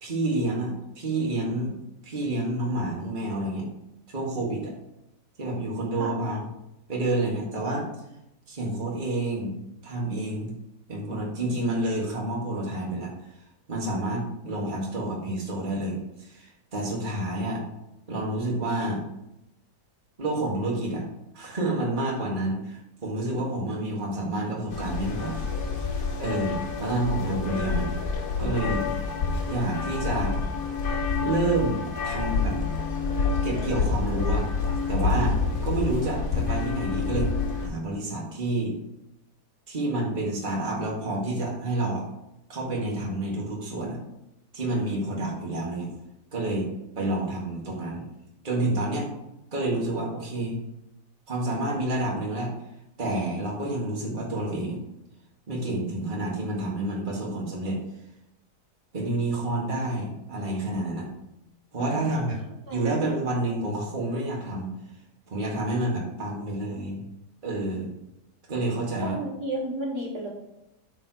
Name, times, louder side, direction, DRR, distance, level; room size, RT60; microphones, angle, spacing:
voice 1, 0.0-1.8 2.0-3.7 4.1-4.7 5.4-6.4 6.9-7.9 8.5-9.6 9.8-10.6 10.9-13.1 13.7-17.6 18.1-19.0 20.2-21.0 21.3-25.4 26.2-27.9 28.4-28.9 29.5-30.4 31.2-32.5 33.4-34.4 34.9-35.4 35.6-37.3 37.6-38.8 39.7-42.0 42.5-44.0 44.5-45.9 46.3-46.7 47.0-48.0 48.4-49.1 49.5-50.6 51.3-52.5 53.0-54.8 55.5-57.8 58.9-61.1 61.7-62.4 62.7-64.7 65.3-67.0 67.4-67.9 68.5-69.2, right 2 dB, 30° right, -3 dB, 1.9 m, -29 dB
sound 1, 24.7-37.7, left 5 dB, 55° left, 1.6 m, -28 dB
voice 2, 61.8-62.3 62.7-62.8 69.0-70.3, right 1 dB, 65° right, -2 dB, 2.3 m, -33 dB
8.8 x 4.4 x 4.7 m, 0.88 s
omnidirectional pair, 1.8 m